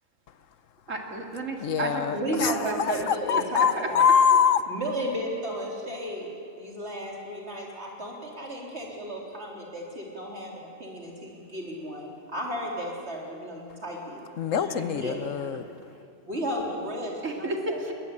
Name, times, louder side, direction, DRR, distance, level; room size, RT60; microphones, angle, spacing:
voice 1, 0.9-3.1 3.5-3.9 14.8-15.2 17.2-17.9, right 2 dB, 80° right, 2 dB, 2.8 m, -33 dB
voice 2, 1.6-4.6 14.4-15.6, left 7 dB, 80° left, 13 dB, 1.2 m, -24 dB
voice 3, 2.1-4.0 4.7-6.3 6.6-14.2 14.5-15.2 16.3-17.8, equal, 55° right, -2 dB, 4.2 m, -34 dB
21.0 x 20.0 x 8.6 m, 2.5 s
omnidirectional pair, 1.3 m